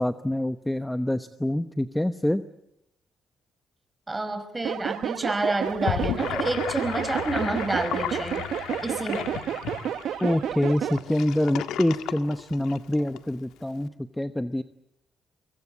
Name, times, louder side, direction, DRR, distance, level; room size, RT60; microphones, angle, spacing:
voice 1, 0.0-2.4 10.2-14.6, left 1 dB, 5° left, 11 dB, 1.0 m, -26 dB
voice 2, 4.1-8.4 8.8-9.3, right 2 dB, 20° right, 9 dB, 5.3 m, -29 dB
sound 1, 4.6-11.0, right 9 dB, 70° right, 1.3 m, -31 dB
Gurgling / Sink (filling or washing), 5.7-13.2, left 11 dB, 90° left, 1.6 m, -34 dB
24.5 x 23.5 x 8.6 m, 0.81 s
cardioid pair, 90°, 0 cm